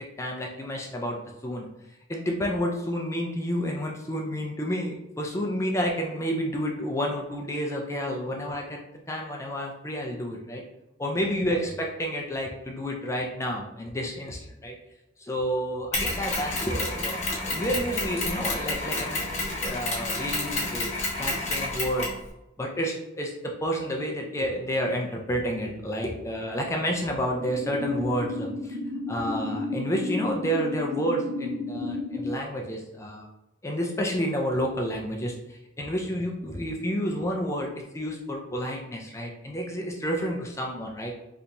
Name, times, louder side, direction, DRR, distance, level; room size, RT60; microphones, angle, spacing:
voice 1, 0.2-1.7 2.1-8.8 9.1-10.6 11.0-14.8 15.2-20.9 21.2-22.1 22.6-28.8 29.1-33.3 33.6-41.1, equal, 15° left, 0 dB, 0.4 m, -30 dB
Mechanisms, 15.9-22.2, left 2 dB, 35° left, 1.0 m, -30 dB
sound 1, 27.3-32.3, left 2 dB, 75° right, 0.8 m, -32 dB
3.3 x 2.8 x 2.6 m, 0.92 s
head